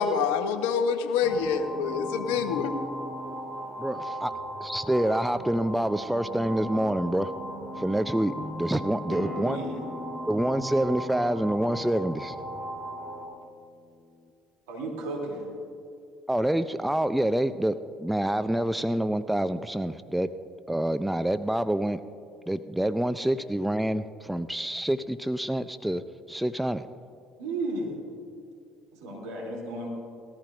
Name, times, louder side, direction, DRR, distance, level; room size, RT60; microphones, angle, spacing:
voice 1, 0.0-2.8, left 6 dB, 75° left, 8 dB, 0.9 m, -26 dB
sound 1, 1.2-13.3, equal, 35° right, 3.3 m, -37 dB
voice 2, 3.8-4.3 4.6-7.3 7.7-9.6 10.3-12.4 16.3-20.3 20.7-22.0 22.5-26.9, right 1 dB, 5° right, 13 dB, 0.5 m, -27 dB
voice 3, 9.0-9.8 14.7-15.5 27.4-27.9 29.0-29.9, right 2 dB, 80° right, -1 dB, 2.8 m, -34 dB
Acoustic guitar, 9.1-14.3, left 3 dB, 35° left, 1.1 m, -44 dB
19.5 x 14.0 x 2.5 m, 2.5 s
hypercardioid pair, 60°, 0 cm